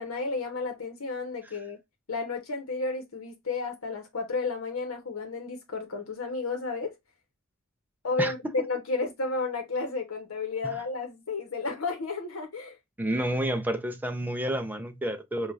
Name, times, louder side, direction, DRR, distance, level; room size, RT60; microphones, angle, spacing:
voice 1, 0.0-1.8 2.1-6.9 8.0-12.8, left 3 dB, 80° left, 1.0 m, -32 dB
voice 2, 8.2-8.7 13.0-15.5, right 1 dB, 10° right, 0.5 m, -30 dB
4.9 x 2.4 x 2.4 m
head